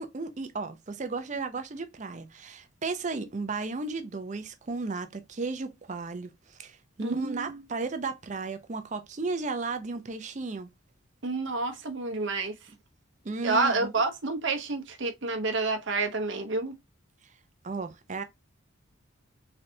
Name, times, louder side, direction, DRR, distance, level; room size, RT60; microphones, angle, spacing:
voice 1, 0.0-10.7 13.2-13.9 17.6-18.2, right 3 dB, 35° right, 0.5 m, -34 dB
voice 2, 7.0-7.6 11.2-12.5 13.4-16.7, right 3 dB, 60° right, 0.8 m, -29 dB
3.9 x 3.2 x 2.7 m
head